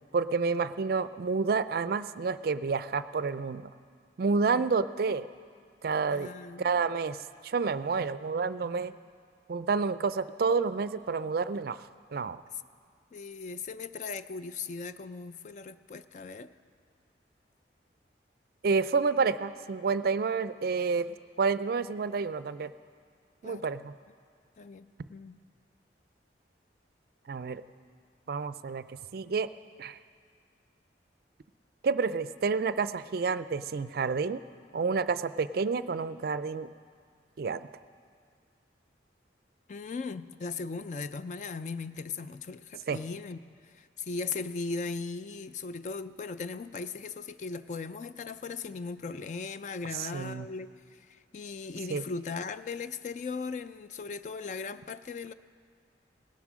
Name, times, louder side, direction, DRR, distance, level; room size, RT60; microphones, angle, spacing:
voice 1, 0.1-3.7 4.2-5.3 5.8-6.3 6.6-7.2 7.4-8.9 9.5-11.8 12.1-12.4 18.6-21.1 21.4-22.7 23.4-23.9 27.3-27.6 28.3-28.8 29.1-29.5 29.8-30.0 31.8-34.4 34.7-36.7 37.4-37.7 42.9-43.0 49.9-50.5 51.9-52.0, right 5 dB, 55° right, 14 dB, 0.4 m, -29 dB
voice 2, 6.1-6.9 13.1-16.5 23.4-23.7 24.6-25.4 39.7-55.3, left 4 dB, 40° left, 13 dB, 0.3 m, -38 dB
18.0 x 11.0 x 6.1 m, 2.1 s
head